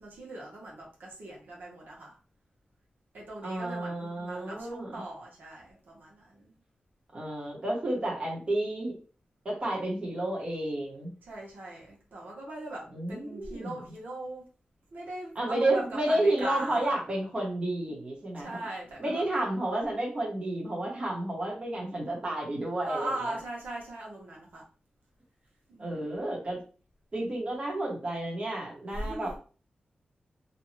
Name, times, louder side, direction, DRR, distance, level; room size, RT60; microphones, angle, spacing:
voice 1, 0.0-2.2 3.1-6.5 11.2-14.4 14.9-16.9 18.4-19.3 22.8-24.6 25.7-25.9 28.9-29.3, right 2 dB, 80° right, -3 dB, 1.0 m, -40 dB
voice 2, 3.4-5.0 7.1-8.9 9.4-11.1 12.9-13.7 15.3-18.6 19.0-23.3 25.8-26.6 27.1-29.4, right 1 dB, 35° right, -4 dB, 1.1 m, -31 dB
2.6 x 2.2 x 3.1 m, 0.37 s
wide cardioid pair, 145°, 3 cm